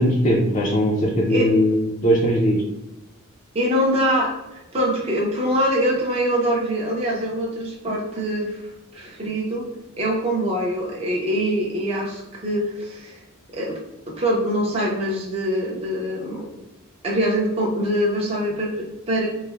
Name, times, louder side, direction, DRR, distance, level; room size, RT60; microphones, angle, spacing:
voice 1, 0.0-2.6, equal, 35° left, -4 dB, 0.4 m, -19 dB
voice 2, 3.5-8.6 8.9-9.7 10.0-13.2 13.5-13.8 14.2-16.5 17.0-19.3, equal, 30° right, -2 dB, 0.5 m, -24 dB
3.1 x 2.0 x 2.3 m, 0.94 s
head